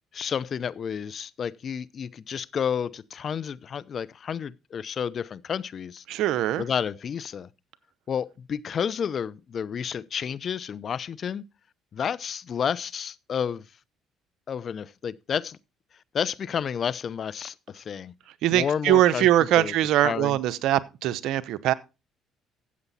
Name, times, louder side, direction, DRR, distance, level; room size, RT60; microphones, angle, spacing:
voice 1, 0.1-6.0 6.6-7.5 8.1-11.5 11.9-13.6 14.5-15.6 16.1-18.1 18.5-19.7 20.0-20.4, left 7 dB, 45° left, 0.6 m, -31 dB
voice 2, 6.1-6.6 18.4-21.7, right 13 dB, 70° right, 0.8 m, -22 dB
13.5 x 8.1 x 4.1 m
supercardioid pair, 85°, 0 cm